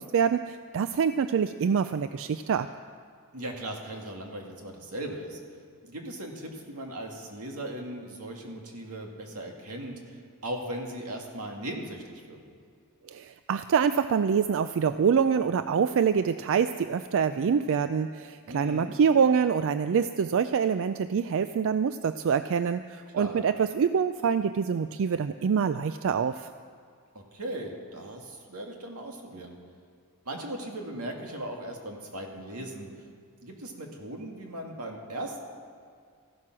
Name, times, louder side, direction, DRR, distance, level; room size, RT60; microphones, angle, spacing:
voice 1, 0.0-2.7 13.1-26.5, right 6 dB, 60° right, 11 dB, 0.4 m, -25 dB
voice 2, 3.3-5.4 5.8-12.4 18.5-19.0 23.2-23.4 27.1-29.6 30.3-32.9 33.4-35.4, right 1 dB, 90° right, 1 dB, 2.1 m, -38 dB
14.5 x 12.0 x 6.1 m, 2.1 s
head